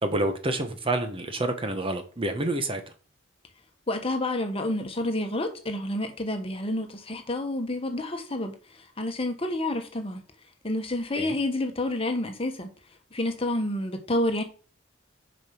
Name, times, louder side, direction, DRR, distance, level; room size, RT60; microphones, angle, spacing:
voice 1, 0.0-2.8 11.1-11.3, right 2 dB, 30° right, 1.1 m, -28 dB
voice 2, 3.9-10.2 10.6-12.7 13.1-14.4, left 1 dB, 30° left, 1.4 m, -29 dB
7.2 x 5.3 x 6.0 m
head